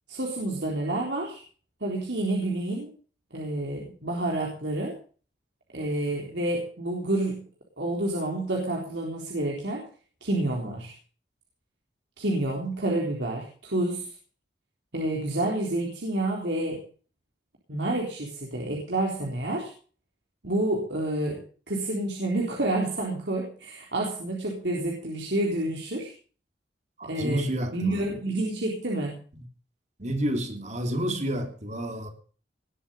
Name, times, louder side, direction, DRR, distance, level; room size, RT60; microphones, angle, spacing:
voice 1, 0.1-1.4 1.8-2.9 3.3-5.0 5.7-7.4 7.8-9.8 10.2-10.9 12.2-14.1 14.9-16.8 17.7-19.7 20.4-21.4 21.7-26.1 27.0-29.2, right 1 dB, 70° right, -2 dB, 3.8 m, -29 dB
voice 2, 27.0-28.1 30.0-32.1, right 1 dB, 40° right, 5 dB, 3.0 m, -30 dB
20.0 x 8.2 x 6.9 m, 0.41 s
head